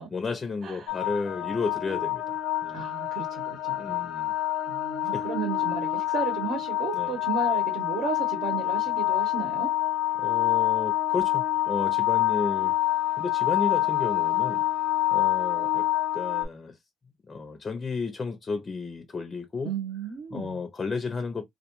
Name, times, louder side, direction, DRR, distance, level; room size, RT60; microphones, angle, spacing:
voice 1, 0.1-2.9 3.8-4.3 5.1-5.3 6.9-7.2 10.2-12.7 13.2-14.6 15.1-15.9 16.1-16.8 17.3-19.7 20.3-21.4, left 4 dB, 25° left, 0.4 m, -33 dB
sound 1, 0.9-16.4, left 14 dB, 90° left, 0.5 m, -27 dB
voice 2, 2.7-3.9 4.7-9.7 19.6-20.6, right 5 dB, 60° right, 0.8 m, -34 dB
2.2 x 2.1 x 2.9 m
cardioid pair, 135°, 0 cm